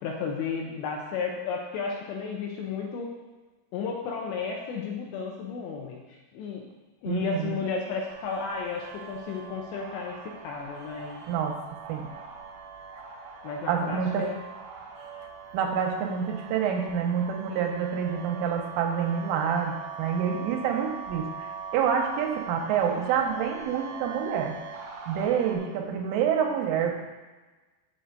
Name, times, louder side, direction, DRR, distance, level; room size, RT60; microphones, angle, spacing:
voice 1, 0.0-3.1 3.7-6.7 7.0-11.2 13.4-14.4, left 5 dB, 80° left, 0 dB, 2.7 m, -33 dB
voice 2, 7.0-7.6 11.3-11.6 11.9-12.1 13.7-14.3 15.5-24.6 25.1-26.9, right 7 dB, 90° right, 2 dB, 3.3 m, -27 dB
sound 1, 8.1-25.6, right 5 dB, 65° right, 2.0 m, -42 dB
8.0 x 7.8 x 3.9 m, 1.2 s
omnidirectional pair, 5.7 m